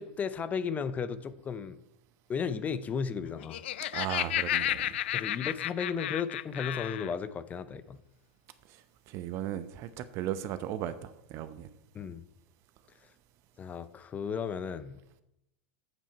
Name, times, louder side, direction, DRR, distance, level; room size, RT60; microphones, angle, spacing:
voice 1, 0.0-1.8 2.3-3.6 5.1-8.0 11.9-12.2 13.6-15.0, left 6 dB, 25° left, 13 dB, 0.6 m, -34 dB
Laughter, 3.3-7.1, left 13 dB, 75° left, 0.4 m, -32 dB
voice 2, 3.9-5.0 9.1-11.7, right 11 dB, 45° right, 12 dB, 0.8 m, -36 dB
8.1 x 7.2 x 5.5 m, 0.84 s
hypercardioid pair, 110°, 6 cm